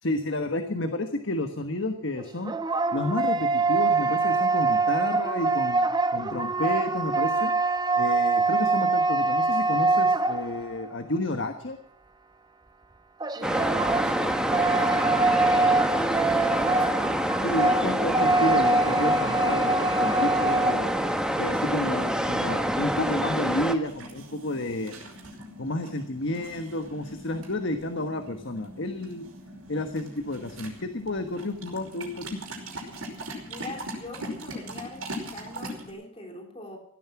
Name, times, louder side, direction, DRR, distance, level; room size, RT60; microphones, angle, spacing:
voice 1, 0.0-2.5 2.9-7.5 7.9-11.8 17.4-20.9 21.4-24.9 25.6-29.2 29.7-32.4, left 2 dB, 60° left, 6 dB, 1.4 m, -31 dB
sound 1, 2.2-10.9 13.2-20.9, right 3 dB, 20° right, 0.7 m, -24 dB
voice 2, 13.3-17.2 33.5-36.8, left 1 dB, 25° left, 2 dB, 3.4 m, -42 dB
sound 2, 13.4-23.7, equal, 5° right, 1.3 m, -27 dB
sound 3, 23.8-35.9, right 1 dB, 85° right, 5.2 m, -41 dB
17.0 x 13.0 x 6.0 m, 0.72 s
head